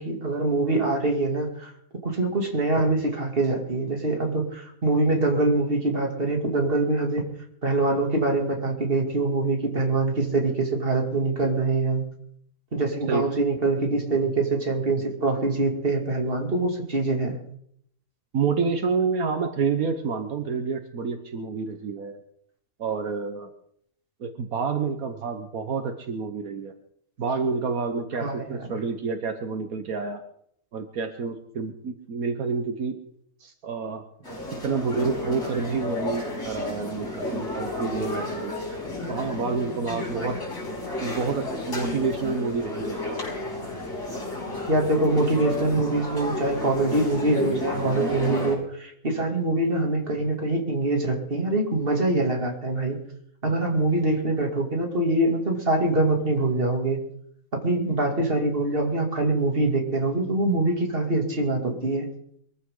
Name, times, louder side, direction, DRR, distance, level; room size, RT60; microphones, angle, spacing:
voice 1, 0.0-1.7 2.0-7.3 7.6-12.0 12.7-17.4 28.2-28.7 44.7-53.0 53.4-57.0 57.6-62.1, right 2 dB, 40° right, 2 dB, 2.9 m, -24 dB
voice 2, 18.3-22.2 22.8-23.5 24.2-26.7 27.2-30.2 30.7-33.0 33.4-34.0 34.6-38.5 39.1-40.4 41.0-43.2, right 5 dB, 75° right, 7 dB, 1.6 m, -28 dB
sound 1, 34.2-48.5, left 2 dB, 60° left, 5.9 m, -32 dB
23.0 x 14.5 x 3.8 m, 0.69 s
omnidirectional pair, 1.5 m